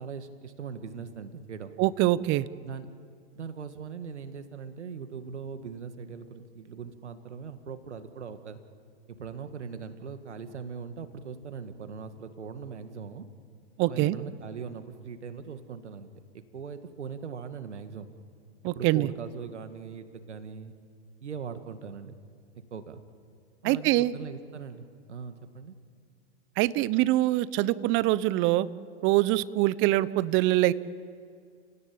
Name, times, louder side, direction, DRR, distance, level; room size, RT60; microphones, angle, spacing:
voice 1, 0.0-1.7 2.6-2.9 3.3-8.6 9.1-13.3 13.9-16.1 16.3-18.1 18.6-20.8 21.2-22.2 22.7-23.0 23.6-25.7, right 6 dB, 85° right, 9 dB, 2.1 m, -40 dB
voice 2, 1.8-2.4 13.8-14.2 18.6-19.1 23.6-24.1 26.6-28.7 29.0-30.7, right 16 dB, 35° right, 18 dB, 0.8 m, -24 dB
29.5 x 17.5 x 8.7 m, 2.2 s
hypercardioid pair, 115°, 34 cm